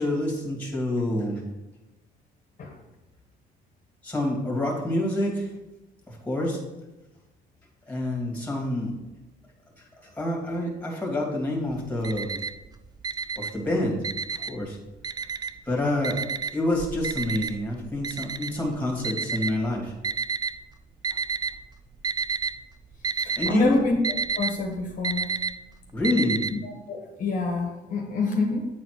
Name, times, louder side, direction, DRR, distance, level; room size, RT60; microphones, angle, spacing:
voice 1, 0.0-1.4 4.0-5.5 6.1-6.6 7.9-8.9 10.2-12.4 13.4-14.0 14.5-14.8 15.7-16.2 16.5-19.9 23.4-23.8 25.9-26.4, left 1 dB, 10° left, 0 dB, 2.3 m, -27 dB
Alarm, 11.7-12.7 13.0-14.7 15.0-15.7 16.0-20.5 21.0-21.7 21.9-22.6 22.8-26.5, right 5 dB, 25° right, 0.4 m, -30 dB
voice 2, 23.2-24.0 24.3-25.3 26.5-28.7, left 3 dB, 50° left, 1 dB, 1.5 m, -28 dB
8.6 x 4.2 x 4.8 m, 1.0 s
cardioid pair, 110°, 17 cm